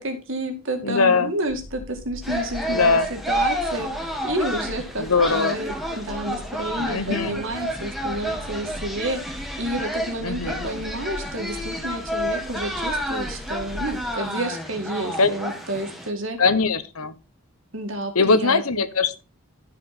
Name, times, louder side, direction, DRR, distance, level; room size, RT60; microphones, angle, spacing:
voice 1, 0.0-16.4 17.7-18.8, right 1 dB, 60° right, 5 dB, 2.2 m, -30 dB
voice 2, 0.8-1.3 2.7-3.1 5.0-5.6 6.8-7.4 10.2-10.7 15.2-15.3 16.4-17.1 18.1-19.2, left 4 dB, 80° left, 12 dB, 1.1 m, -21 dB
sound 1, 1.5-14.1, left 1 dB, 25° left, 4.9 m, -40 dB
sound 2, 2.2-16.1, equal, ahead, 1.5 m, -30 dB
14.5 x 5.0 x 4.2 m, 0.31 s
head